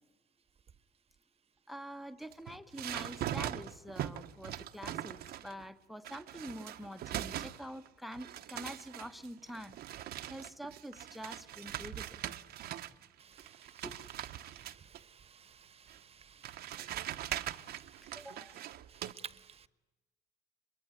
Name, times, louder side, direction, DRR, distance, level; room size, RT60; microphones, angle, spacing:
voice 1, 1.7-12.2 13.8-14.0 18.1-18.5, equal, ahead, 1.0 m, -46 dB
sound 1, 2.2-5.6 6.0-13.1 13.4-15.0 15.9-16.0 16.4-19.1, right 12 dB, 70° right, 1.0 m, -41 dB
voice 2, 13.2-13.9 14.5-19.7, right 7 dB, 35° right, 1.1 m, -55 dB
23.0 x 23.0 x 9.5 m
cardioid pair, 110°, 17 cm